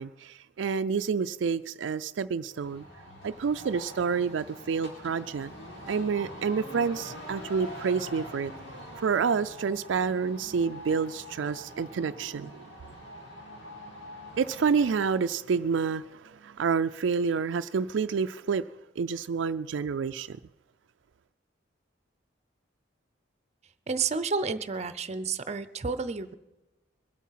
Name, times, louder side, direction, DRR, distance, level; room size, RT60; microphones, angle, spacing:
voice 1, 0.0-2.8 3.2-5.5 5.9-8.5 9.0-12.7 14.4-18.7 19.0-20.4, right 5 dB, 75° right, 0.4 m, -28 dB
tractor-lift, 2.5-15.3, equal, 85° left, 4.0 m, -44 dB
voice 2, 23.9-26.3, right 5 dB, 35° right, 0.7 m, -30 dB
22.5 x 8.3 x 5.7 m
head